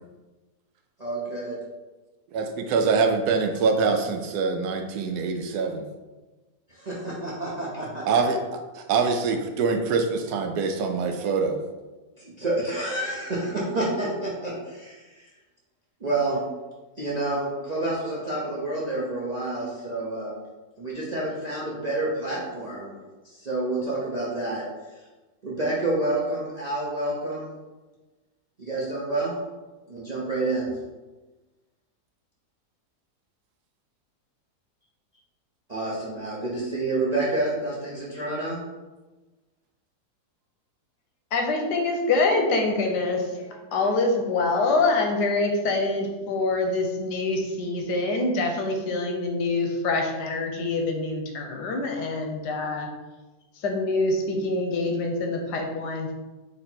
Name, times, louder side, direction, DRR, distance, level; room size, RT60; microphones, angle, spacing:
voice 1, 1.0-1.6 6.7-8.2 12.2-15.2 16.0-16.4 17.0-20.3 20.8-23.0 23.4-24.6 25.4-27.5 28.6-29.3 29.9-30.7 35.7-38.6, right 2 dB, 45° right, -6 dB, 0.5 m, -28 dB
voice 2, 2.3-5.8 8.1-8.4 8.7-11.6, right 4 dB, 75° right, 5 dB, 1.1 m, -24 dB
voice 3, 41.3-52.9 53.6-56.1, left 3 dB, 85° left, 3 dB, 1.3 m, -25 dB
4.2 x 2.9 x 4.2 m, 1.2 s
omnidirectional pair, 1.8 m